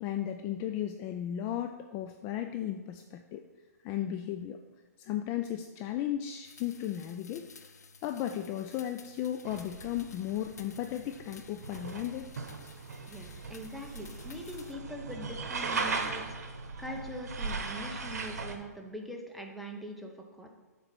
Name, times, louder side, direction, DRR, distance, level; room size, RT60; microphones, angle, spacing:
voice 1, 0.0-3.4 3.8-4.6 5.0-7.7 8.0-12.3, left 11 dB, 30° left, 6 dB, 0.4 m, -35 dB
sound 1, 6.4-14.7, left 5 dB, 80° left, 0.7 m, -54 dB
sound 2, 9.4-18.6, right 4 dB, 70° right, 1.0 m, -38 dB
voice 2, 13.1-20.5, equal, ahead, 1 dB, 0.9 m, -43 dB
7.6 x 4.0 x 6.1 m, 1.2 s
hypercardioid pair, 130°, 9 cm